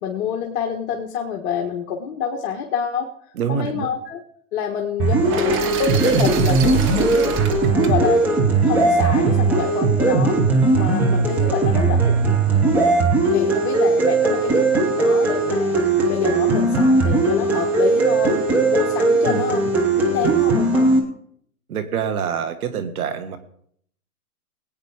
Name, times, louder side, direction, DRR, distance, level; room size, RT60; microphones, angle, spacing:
voice 1, 0.0-3.1 3.5-4.2 4.5-7.3 7.8-10.4 10.7-12.4 13.3-19.6 19.9-20.9, left 7 dB, 45° left, 1 dB, 1.4 m, -27 dB
voice 2, 3.3-3.9 19.2-19.4 21.7-23.4, right 7 dB, 65° right, 8 dB, 1.7 m, -26 dB
sound 1, 5.0-21.0, right 3 dB, 5° right, 0.4 m, -18 dB
sound 2, 5.3-9.3, right 5 dB, 25° right, 1.3 m, -30 dB
21.0 x 8.9 x 3.5 m, 0.65 s
hypercardioid pair, 130°, 47 cm